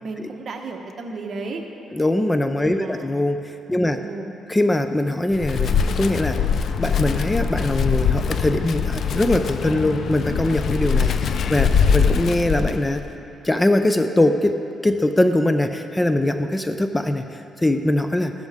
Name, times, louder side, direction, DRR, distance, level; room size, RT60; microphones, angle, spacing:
voice 1, 0.0-1.7 2.6-3.1 3.7-4.4 11.1-11.2, right 3 dB, 50° right, 2 dB, 1.3 m, -34 dB
voice 2, 1.9-4.0 4.5-6.4 6.8-13.0 13.4-14.6 14.8-18.3, left 1 dB, 15° left, 8 dB, 0.5 m, -22 dB
Wind, 5.3-13.1, left 6 dB, 60° left, 0.5 m, -22 dB
14.5 x 12.5 x 3.6 m, 2.8 s
cardioid pair, 90°, 0 cm